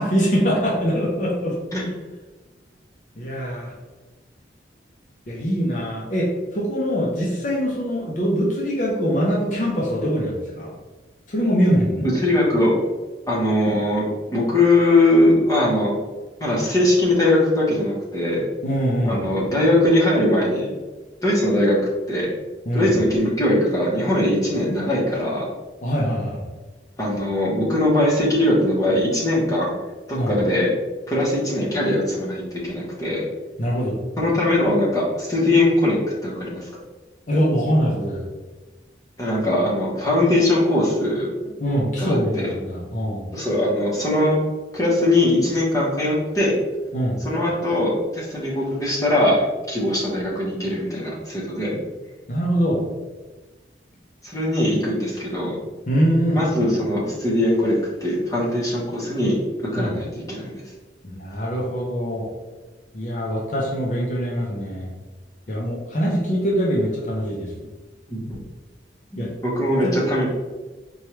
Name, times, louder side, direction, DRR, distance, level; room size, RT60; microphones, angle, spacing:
voice 1, 0.0-1.6 3.2-3.7 5.3-10.7 11.3-12.1 18.6-19.3 22.7-22.9 25.8-26.4 30.1-30.3 33.6-34.0 37.3-38.2 41.6-43.3 46.9-47.2 52.3-52.8 55.9-56.4 59.8-59.9 61.0-62.3 62.9-64.9 65.5-67.7 69.2-69.3 69.8-69.9, equal, 40° left, -3 dB, 0.6 m, -23 dB
voice 2, 12.2-12.7 13.3-14.1 14.3-15.9 16.4-18.4 19.1-20.7 21.2-21.8 22.1-22.3 22.7-25.4 27.0-29.7 30.1-30.7 31.1-33.2 34.2-36.0 36.2-36.7 39.2-41.3 42.0-42.5 43.3-44.4 44.7-46.5 47.2-51.7 54.2-55.5 56.3-60.6 68.1-68.4 69.1-70.3, left 1 dB, 20° left, -6 dB, 0.9 m, -21 dB
4.4 x 2.3 x 3.1 m, 1.2 s
head